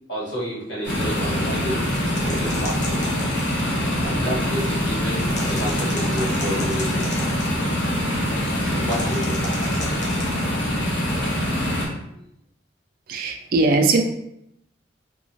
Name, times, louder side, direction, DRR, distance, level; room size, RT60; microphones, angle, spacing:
voice 1, 0.1-1.9 2.2-3.0 4.0-7.1 8.7-9.4 12.1-12.2, equal, 65° left, -7 dB, 1.2 m, -30 dB
sound 1, 0.8-11.9, equal, 90° left, 0.9 m, -24 dB
sound 2, 1.8-3.7 5.2-7.5 8.9-10.4, left 2 dB, 40° left, 0.6 m, -35 dB
voice 2, 13.1-14.0, right 3 dB, 50° right, 4 dB, 0.3 m, -19 dB
2.8 x 2.3 x 2.6 m, 0.78 s
head